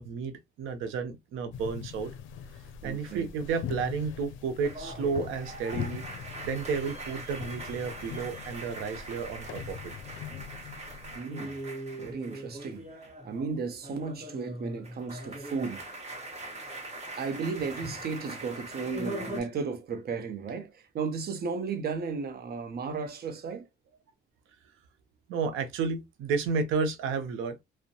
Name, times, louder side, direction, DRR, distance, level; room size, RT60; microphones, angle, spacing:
voice 1, 0.0-2.1 2.8-9.9 13.3-13.4 25.3-27.6, right 5 dB, 90° right, 0.6 m, -32 dB
sound 1, 1.5-11.2, left 8 dB, 85° left, 0.4 m, -42 dB
voice 2, 2.8-3.3 11.1-11.6 12.0-12.9 13.2-15.9 17.1-23.7, right 5 dB, 50° right, 0.6 m, -34 dB
sound 2, 4.6-13.4 13.7-19.4, right 1 dB, 35° right, 1.2 m, -41 dB
2.5 x 2.1 x 2.7 m
cardioid pair, 90°, 20 cm